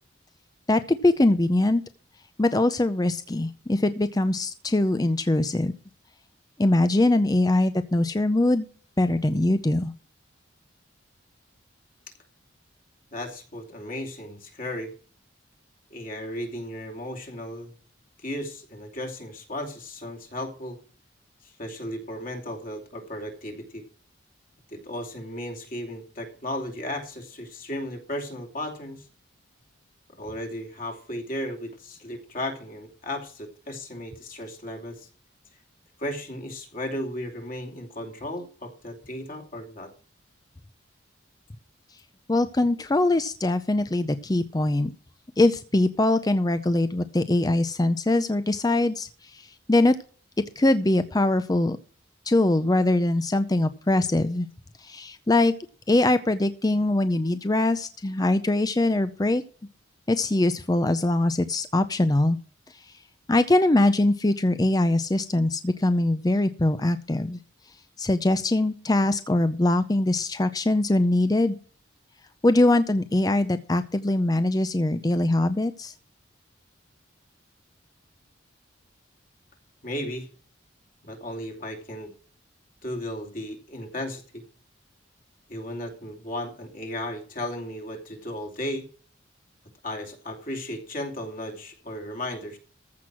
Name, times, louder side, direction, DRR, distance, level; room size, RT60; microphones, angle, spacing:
voice 1, 0.7-1.8 2.4-5.7 6.6-8.7 9.0-9.9 42.3-44.9 45.4-50.0 50.6-51.8 52.3-54.5 54.8-55.5 55.9-59.4 60.1-62.4 62.7-62.9 63.3-67.4 68.0-71.6 72.4-75.9, left 2 dB, 20° left, 11 dB, 0.5 m, -22 dB
voice 2, 13.1-14.9 15.9-17.7 18.2-20.8 21.4-23.8 24.7-29.1 30.2-35.1 36.0-39.9 79.8-80.3 81.0-82.1 82.8-84.4 85.5-88.9 89.8-92.6, left 1 dB, 45° left, 3 dB, 2.7 m, -35 dB
14.5 x 6.1 x 6.1 m, 0.42 s
head